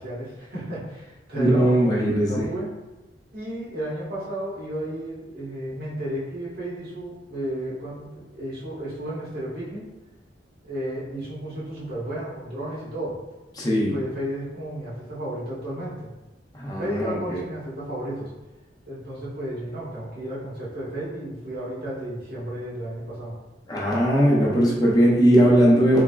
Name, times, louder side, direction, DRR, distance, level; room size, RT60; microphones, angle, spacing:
voice 1, 0.0-1.8 2.2-2.7 3.3-9.9 10.6-13.2 13.8-16.1 16.8-18.3 18.8-23.3, right 1 dB, 55° right, -8 dB, 1.3 m, -33 dB
voice 2, 1.4-2.5 13.6-13.9 16.5-17.4 23.7-26.0, equal, 20° left, -5 dB, 0.7 m, -19 dB
3.5 x 3.3 x 2.3 m, 1.1 s
head